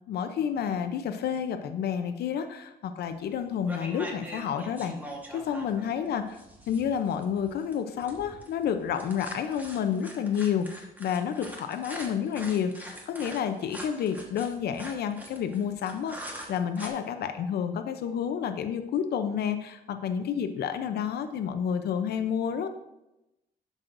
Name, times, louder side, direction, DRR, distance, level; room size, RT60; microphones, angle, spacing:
voice 1, 0.1-4.9 5.3-6.4 6.7-22.7, left 8 dB, 75° left, 8 dB, 0.6 m, -30 dB
sound 1, 3.1-3.3 3.7-16.9, right 1 dB, 10° right, 1.3 m, -43 dB
11.5 x 6.2 x 2.6 m, 0.92 s
cardioid pair, 130°, 17 cm